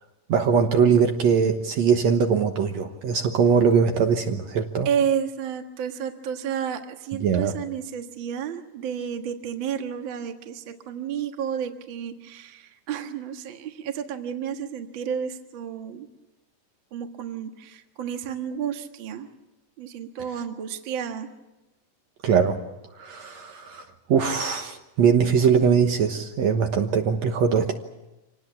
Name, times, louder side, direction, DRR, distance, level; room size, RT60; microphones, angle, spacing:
voice 1, 0.3-4.9 7.2-7.6 22.2-22.6 23.0-27.7, right 6 dB, 65° right, 4 dB, 2.3 m, -21 dB
voice 2, 4.9-16.1 16.9-19.3 19.8-21.3, right 8 dB, 45° right, 5 dB, 1.9 m, -31 dB
26.0 x 19.0 x 8.5 m, 1.0 s
omnidirectional pair, 3.6 m